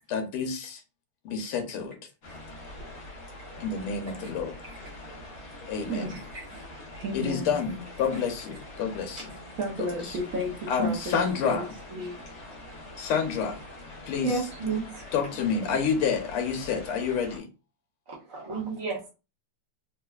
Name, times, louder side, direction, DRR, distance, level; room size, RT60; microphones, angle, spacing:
voice 1, 0.1-0.8 1.3-2.0 3.6-4.5 5.6-6.2 7.1-9.3 10.0-10.2 10.7-11.7 13.0-13.6 14.1-14.4 15.1-17.5, left 6 dB, 80° left, 4 dB, 1.7 m, -29 dB
sound 1, 2.2-17.4, left 1 dB, 50° left, 1.2 m, -44 dB
voice 2, 5.9-7.6 9.3-11.6 11.9-12.2, right 1 dB, 75° right, -2 dB, 0.7 m, -34 dB
voice 3, 14.2-15.1 18.1-19.1, right 5 dB, 55° right, -5 dB, 0.3 m, -31 dB
4.3 x 2.4 x 2.3 m, 0.30 s
omnidirectional pair, 2.4 m